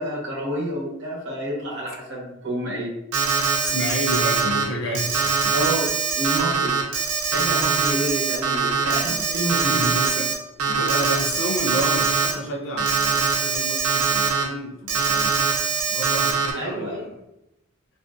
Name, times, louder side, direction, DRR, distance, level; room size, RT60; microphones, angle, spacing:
voice 1, 0.0-2.9 5.5-6.8 7.3-9.8 16.5-17.1, right 1 dB, 55° right, -4 dB, 0.9 m, -29 dB
Alarm, 3.1-4.6 5.0-10.3 10.6-12.3 12.8-14.4 14.9-16.5, right 5 dB, 75° right, 0.5 m, -22 dB
voice 2, 3.6-5.5 7.9-8.0 9.1-9.2 9.6-10.3 10.7-15.4 15.9-17.2, equal, 60° left, 0 dB, 0.5 m, -30 dB
2.5 x 2.4 x 2.2 m, 0.87 s
head